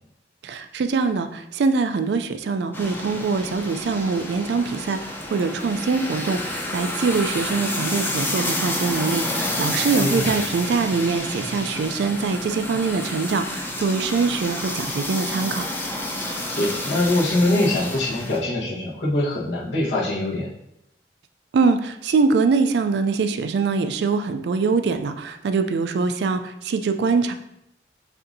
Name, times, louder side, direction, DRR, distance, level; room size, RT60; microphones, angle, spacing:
voice 1, 0.4-15.7 21.5-27.3, right 4 dB, 70° right, 9 dB, 0.3 m, -23 dB
sound 1, 2.7-18.4, left 1 dB, 10° left, 0.5 m, -29 dB
voice 2, 10.0-10.3 16.5-20.5, left 1 dB, 85° left, -5 dB, 1.2 m, -23 dB
6.6 x 2.6 x 2.6 m, 0.80 s
head